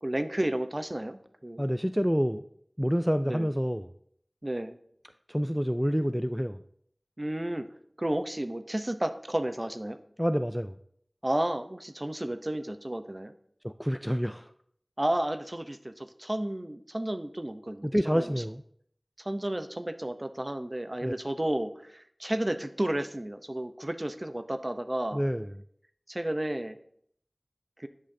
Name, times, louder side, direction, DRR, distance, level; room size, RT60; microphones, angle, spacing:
voice 1, 0.0-1.6 3.3-3.5 4.4-4.8 7.2-7.7 8.0-10.0 11.2-13.3 15.0-18.3 19.2-25.2 26.1-26.8 27.8-27.9, right 1 dB, 40° right, 9 dB, 0.6 m, -32 dB
voice 2, 1.6-2.4 2.8-3.9 5.3-6.6 10.2-10.8 13.6-14.5 17.8-18.6 21.0-21.1 25.1-25.5, equal, 5° right, 10 dB, 0.3 m, -28 dB
10.0 x 8.6 x 2.7 m, 0.66 s
wide cardioid pair, 40°, 0 cm